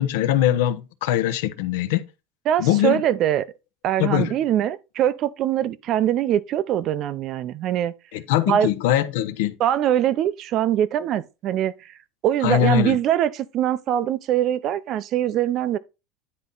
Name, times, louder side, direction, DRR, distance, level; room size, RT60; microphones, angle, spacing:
voice 1, 0.0-2.0 2.6-3.0 4.0-4.3 8.1-9.5 12.4-13.0, left 12 dB, 85° left, 0.8 m, -22 dB
voice 2, 2.5-3.5 3.8-7.9 8.5-8.7 9.6-11.9 12.2-15.8, right 11 dB, 45° right, 0.5 m, -23 dB
9.8 x 4.1 x 3.8 m
supercardioid pair, 145°, 0 cm